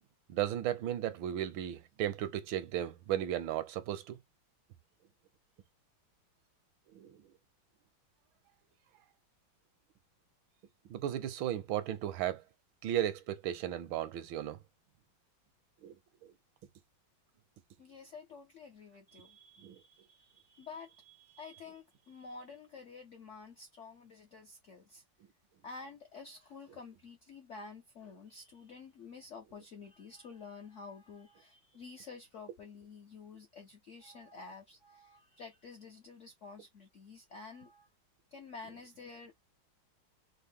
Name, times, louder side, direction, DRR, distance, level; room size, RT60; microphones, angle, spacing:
voice 1, 0.3-4.2 6.9-7.2 10.9-12.4 12.8-14.6 15.8-16.0 16.2-16.3 19.6-19.8, right 11 dB, 80° right, 1.4 m, -35 dB
voice 2, 17.8-25.0 25.6-37.9 38.3-39.3, left 4 dB, 70° left, 0.7 m, -50 dB
4.6 x 2.1 x 3.5 m
omnidirectional pair, 2.2 m